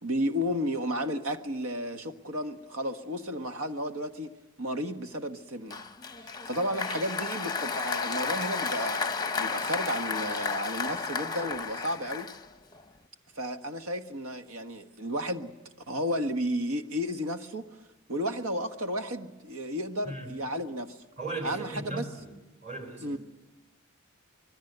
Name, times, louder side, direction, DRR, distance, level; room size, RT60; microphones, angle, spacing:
voice 1, 0.0-4.3 4.6-5.8 6.2-12.3 13.3-15.5 15.9-17.8 18.1-21.0 21.4-22.0 23.0-23.2, equal, 80° right, 7 dB, 1.5 m, -33 dB
Applause, 5.7-12.8, left 5 dB, 20° left, 0.7 m, -33 dB
voice 2, 21.2-22.4 22.6-23.2, right 2 dB, 30° right, 5 dB, 4.0 m, -37 dB
25.5 x 20.5 x 8.0 m, 1.1 s
head